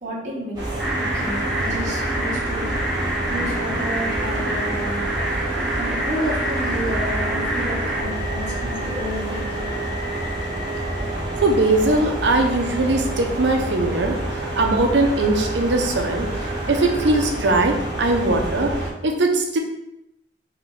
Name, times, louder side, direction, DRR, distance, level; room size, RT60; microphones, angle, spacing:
voice 1, 0.0-0.6 1.0-2.7 3.3-5.0 5.4-5.5 5.7-9.8, equal, 40° right, -5 dB, 1.0 m, -31 dB
sound 1, 0.5-18.9, right 1 dB, 25° right, 1.2 m, -28 dB
sound 2, 0.8-8.0, right 1 dB, ahead, 0.7 m, -27 dB
sound 3, 2.2-17.3, equal, 30° left, 1.2 m, -38 dB
voice 2, 11.4-14.2 14.6-16.3 16.7-18.7 19.0-19.6, right 2 dB, 80° right, 3 dB, 0.6 m, -20 dB
3.3 x 3.1 x 3.8 m, 0.85 s
head